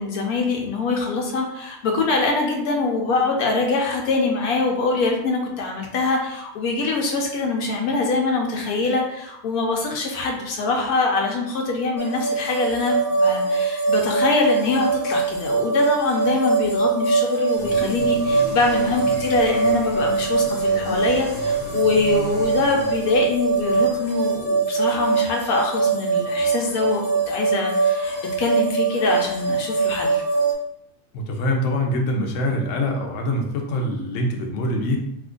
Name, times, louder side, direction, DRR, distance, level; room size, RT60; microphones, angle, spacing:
voice 1, 0.0-30.2, left 3 dB, 90° left, 1 dB, 1.1 m, -24 dB
sound 1, 12.0-30.5, right 4 dB, 25° left, 0.4 m, -22 dB
sound 2, 17.6-24.4, equal, 15° right, 0.7 m, -35 dB
voice 2, 31.1-35.0, left 1 dB, 65° left, 1 dB, 0.9 m, -24 dB
2.8 x 2.4 x 3.6 m, 0.79 s
omnidirectional pair, 1.5 m